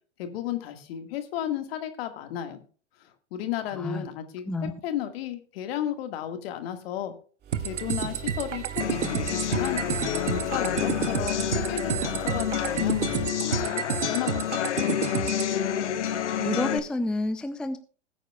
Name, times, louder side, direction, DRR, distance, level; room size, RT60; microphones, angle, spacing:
voice 1, 0.2-2.6 3.0-4.5 4.8-7.1 7.6-9.8 10.2-14.9, left 10 dB, 60° left, 7 dB, 1.8 m, -34 dB
voice 2, 3.7-4.1 4.5-4.7 16.0-17.8, left 2 dB, ahead, 10 dB, 0.5 m, -30 dB
sound 1, 7.4-13.4, right 9 dB, 30° right, 1.9 m, -40 dB
sound 2, 7.5-15.5, right 8 dB, 85° right, 0.8 m, -30 dB
sound 3, 8.8-16.8, left 10 dB, 75° left, 1.0 m, -29 dB
20.0 x 9.0 x 2.3 m, 0.40 s
hypercardioid pair, 100°, 35 cm